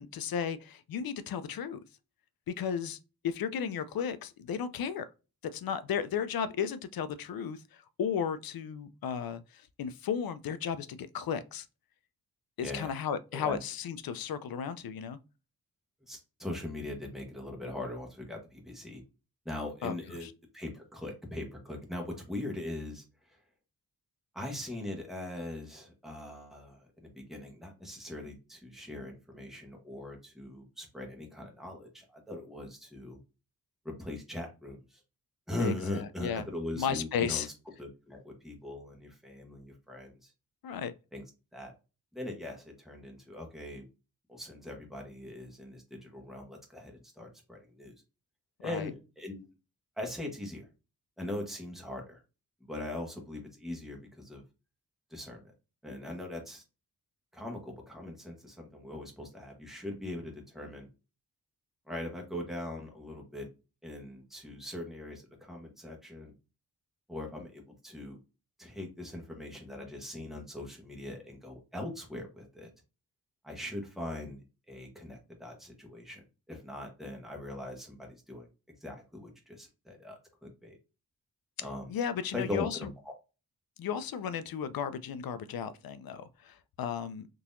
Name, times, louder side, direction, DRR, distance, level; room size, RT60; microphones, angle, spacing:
voice 1, 0.0-1.8 2.5-3.0 3.2-5.1 5.4-11.7 12.6-15.2 19.8-20.3 35.6-36.5 36.7-37.5 40.6-40.9 48.6-48.9 81.9-82.9 83.8-87.3, left 7 dB, 70° left, 0.5 m, -34 dB
voice 2, 12.6-12.9 13.3-13.6 16.1-19.0 19.4-20.3 20.5-23.4 24.3-33.2 34.0-35.0 35.5-37.4 37.8-40.3 41.1-41.2 41.5-41.7 42.1-43.8 44.3-47.9 48.6-49.4 50.0-50.7 51.2-52.2 52.7-54.4 55.1-55.4 55.8-56.6 57.3-60.9 61.9-63.5 63.8-66.3 67.1-68.2 68.6-72.7 73.4-74.4 74.7-76.2 76.5-78.5 78.8-80.8 81.6-81.9 82.3-83.1, left 1 dB, ahead, 1.1 m, -40 dB
3.8 x 2.8 x 2.5 m
wide cardioid pair, 115°, 37 cm